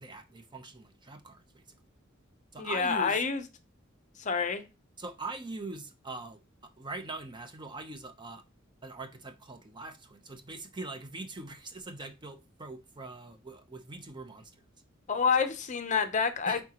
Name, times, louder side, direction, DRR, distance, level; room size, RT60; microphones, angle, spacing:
voice 1, 0.0-1.6 2.5-3.2 5.0-8.4 8.8-14.6 16.5-16.6, right 3 dB, 25° right, 0.6 m, -42 dB
voice 2, 2.6-3.4 4.2-4.6 15.1-16.6, left 5 dB, 40° left, 0.7 m, -28 dB
8.8 x 3.6 x 2.9 m
head